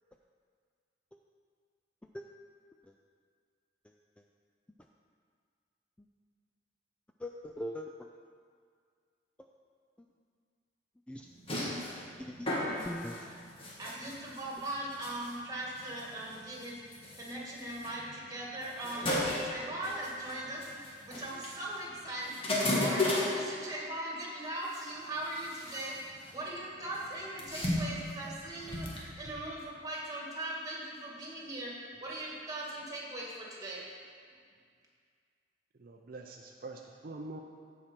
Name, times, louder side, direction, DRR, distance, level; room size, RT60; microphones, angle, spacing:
voice 1, 7.2-8.1 11.1-11.6 12.2-13.3 18.8-19.1, left 1 dB, 5° left, 2 dB, 0.3 m, -42 dB
sound 1, 11.3-23.4 24.6-24.8 25.2-26.5 26.8-29.3, left 1 dB, 30° left, 1.5 m, -36 dB
voice 2, 13.8-16.7 17.1-26.0 26.3-31.7 32.0-33.8, right 1 dB, 20° right, -4 dB, 2.0 m, -40 dB
voice 3, 35.8-37.4, right 2 dB, 55° right, 2 dB, 0.5 m, -45 dB
14.5 x 5.0 x 4.4 m, 2.1 s
head